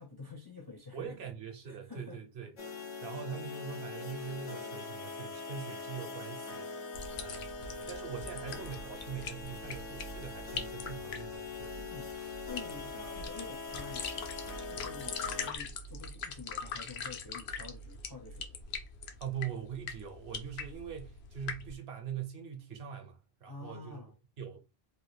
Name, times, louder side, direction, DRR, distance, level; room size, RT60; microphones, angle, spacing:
voice 1, 0.0-1.2 1.7-2.2 11.8-12.1 12.5-14.3 14.7-18.6 23.5-24.1, left 4 dB, 30° left, 0.4 m, -48 dB
voice 2, 0.9-2.5 3.0-11.8 19.2-24.0 24.4-24.6, right 8 dB, 65° right, 0.9 m, -42 dB
sound 1, 2.6-15.5, left 4 dB, 85° left, 1.1 m, -42 dB
sound 2, 6.9-21.7, left 5 dB, 70° left, 0.8 m, -42 dB
3.3 x 2.3 x 3.1 m
omnidirectional pair, 1.2 m